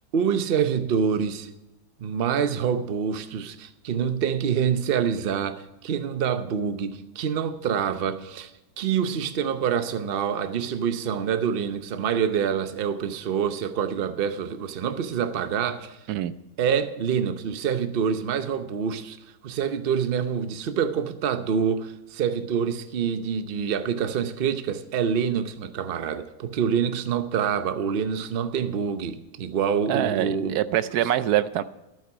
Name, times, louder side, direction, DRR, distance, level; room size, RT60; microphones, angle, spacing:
voice 1, 0.1-1.5 2.0-8.5 8.8-16.0 16.6-19.2 19.4-30.6, right 7 dB, 50° right, 0.7 m, -26 dB
voice 2, 29.9-31.6, right 12 dB, 70° right, 1.1 m, -24 dB
11.5 x 9.1 x 6.1 m
omnidirectional pair, 1.8 m